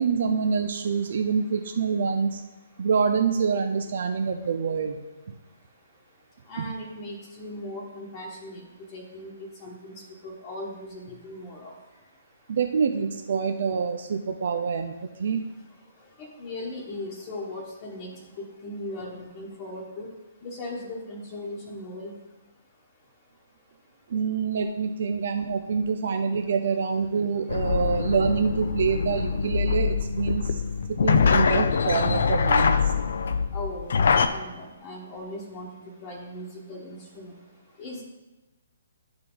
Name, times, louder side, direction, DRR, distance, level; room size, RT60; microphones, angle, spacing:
voice 1, 0.0-2.4 2.8-5.0 6.6-6.7 12.5-15.5 24.1-30.6 30.9-32.9, right 5 dB, 60° right, 6 dB, 0.6 m, -26 dB
voice 2, 6.5-8.6 8.9-9.3 9.6-9.9 10.2-11.7 16.2-20.1 20.4-22.1 33.5-35.7 36.0-37.3 37.8-38.0, left 1 dB, 30° left, -3 dB, 1.2 m, -38 dB
sound 1, 27.5-34.3, left 5 dB, 65° left, 0.5 m, -24 dB
10.5 x 4.9 x 3.9 m, 1.1 s
hypercardioid pair, 145°, 0 cm